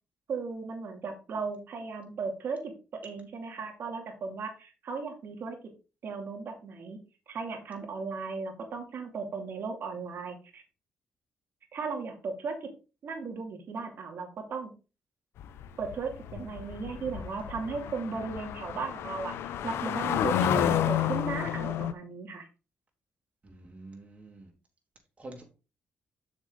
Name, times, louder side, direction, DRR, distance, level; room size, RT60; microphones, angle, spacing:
voice 1, 0.3-2.7 3.0-5.6 6.0-7.0 7.3-10.6 11.7-12.7 13.0-14.7 15.8-22.5, right 4 dB, 60° right, 2.4 m, -36 dB
sound 1, 15.4-21.9, left 10 dB, 85° left, 0.7 m, -31 dB
voice 2, 23.4-24.5 25.2-25.4, right 2 dB, 30° right, 3.2 m, -47 dB
7.3 x 6.3 x 3.8 m
cardioid pair, 90°, 4 cm